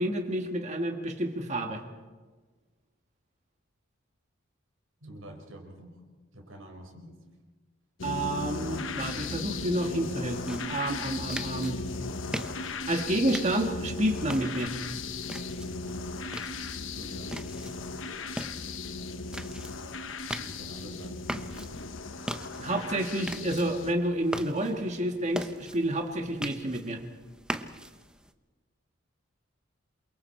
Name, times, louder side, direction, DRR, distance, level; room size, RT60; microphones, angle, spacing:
voice 1, 0.0-1.8 8.0-11.8 12.9-14.7 22.6-27.0, right 1 dB, 35° right, 3 dB, 1.8 m, -29 dB
voice 2, 5.0-6.0 6.3-7.2 16.9-17.4 20.3-21.2, right 1 dB, 90° right, 3 dB, 4.8 m, -47 dB
sound 1, 8.0-23.9, left 3 dB, 70° left, 1.1 m, -37 dB
sound 2, 10.5-28.3, right 1 dB, 5° right, 0.8 m, -42 dB
28.0 x 23.5 x 4.5 m, 1.3 s
head